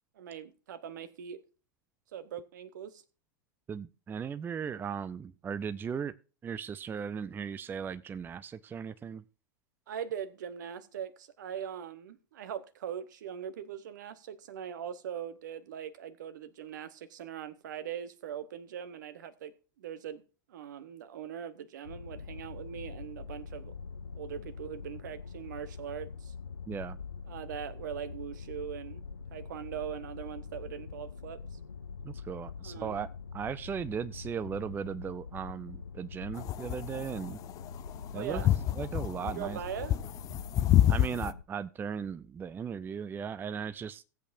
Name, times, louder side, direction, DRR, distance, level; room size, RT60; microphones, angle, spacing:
voice 1, 0.2-1.4 2.1-3.0 9.9-20.2 20.5-23.7 24.2-26.3 27.3-29.0 29.3-31.4 32.6-33.1 38.1-38.5 39.2-40.0, right 9 dB, 65° right, 1.2 m, -41 dB
voice 2, 3.7-6.1 6.4-9.2 26.7-27.0 32.0-33.1 33.3-37.4 38.1-38.4 38.8-39.6 40.9-44.0, right 7 dB, 20° right, 0.5 m, -37 dB
sound 1, 21.8-41.4, left 5 dB, 85° left, 0.4 m, -44 dB
sound 2, 36.4-41.3, left 13 dB, 35° left, 0.5 m, -27 dB
17.5 x 8.2 x 2.6 m
figure-of-eight pair, 90°, 11 cm